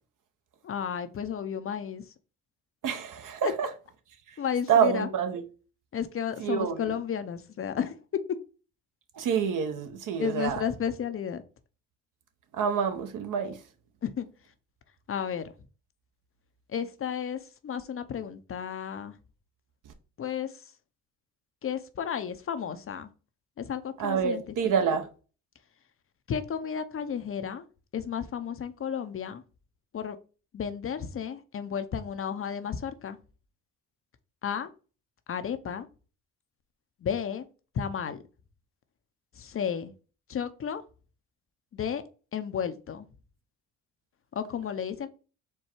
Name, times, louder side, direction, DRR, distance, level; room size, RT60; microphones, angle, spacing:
voice 1, 0.6-2.1 3.4-3.5 4.4-5.1 5.9-8.4 10.2-11.4 14.0-14.3 15.1-15.4 16.7-19.2 20.2-20.6 21.6-23.1 23.6-24.4 26.3-27.7 27.9-29.4 29.9-30.2 30.5-33.2 34.4-34.7 35.3-35.9 37.0-37.4 37.7-38.2 39.4-39.9 40.3-40.8 41.7-42.0 42.3-43.1 44.3-45.1, left 8 dB, 40° left, 0.6 m, -32 dB
voice 2, 2.8-3.7 4.7-5.4 6.4-6.9 9.1-10.6 12.5-13.6 19.9-20.0 24.0-25.1, right 7 dB, 60° right, 1.0 m, -27 dB
4.4 x 2.3 x 4.4 m
supercardioid pair, 65°, 36 cm